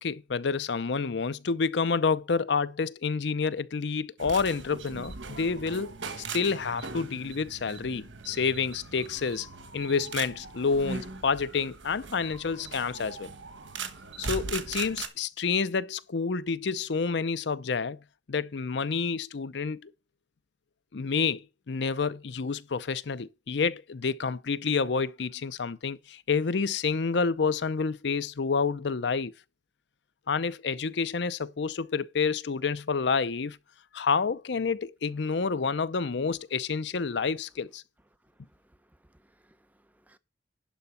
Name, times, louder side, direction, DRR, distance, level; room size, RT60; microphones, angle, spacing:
voice 1, 0.0-5.9 6.3-9.5 9.7-13.3 14.2-18.0 18.3-19.9 20.9-21.4 21.7-29.3 30.3-33.6 33.9-37.8, left 5 dB, 70° left, 0.6 m, -29 dB
sound 1, 4.2-15.1, right 4 dB, 90° right, 1.3 m, -40 dB
voice 2, 38.2-40.2, right 1 dB, 10° right, 0.7 m, -64 dB
11.5 x 3.9 x 6.9 m
head